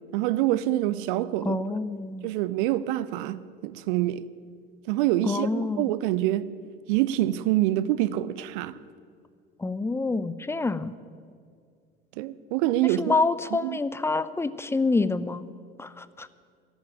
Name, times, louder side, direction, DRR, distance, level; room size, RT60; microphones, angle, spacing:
voice 1, 0.1-1.6 2.2-4.2 4.9-6.5 6.9-8.8 12.2-13.2 13.6-13.8, right 14 dB, 60° right, 0.6 m, -26 dB
voice 2, 1.4-2.3 5.3-5.9 9.6-10.9 13.0-15.5 15.8-16.3, left 3 dB, 10° left, 0.5 m, -27 dB
13.5 x 7.2 x 9.8 m
figure-of-eight pair, 65°, 31 cm